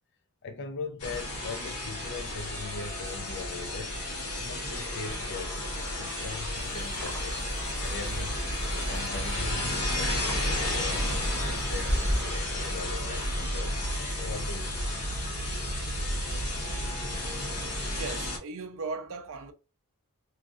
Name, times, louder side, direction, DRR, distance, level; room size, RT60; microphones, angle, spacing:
voice 1, 0.4-4.0 4.4-7.5 7.8-8.5 8.9-11.2 11.5-14.9, left 4 dB, 50° left, 0.5 m, -41 dB
sound 1, 1.0-18.4, left 1 dB, 75° left, 1.5 m, -32 dB
sound 2, 6.5-12.2, equal, 10° left, 0.9 m, -36 dB
voice 2, 17.9-19.5, right 4 dB, 60° right, 0.5 m, -37 dB
3.1 x 2.6 x 2.4 m
head